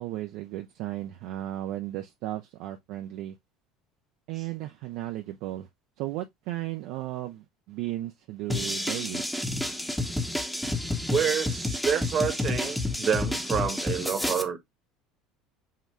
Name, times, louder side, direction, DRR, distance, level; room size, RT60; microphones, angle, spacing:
voice 1, 0.0-3.4 4.3-5.7 6.0-9.2, right 15 dB, 60° right, 0.5 m, -35 dB
sound 1, 8.5-14.4, left 2 dB, 5° left, 0.8 m, -30 dB
voice 2, 11.1-14.6, right 7 dB, 45° right, 1.1 m, -28 dB
5.6 x 2.3 x 3.1 m
hypercardioid pair, 65°, 0 cm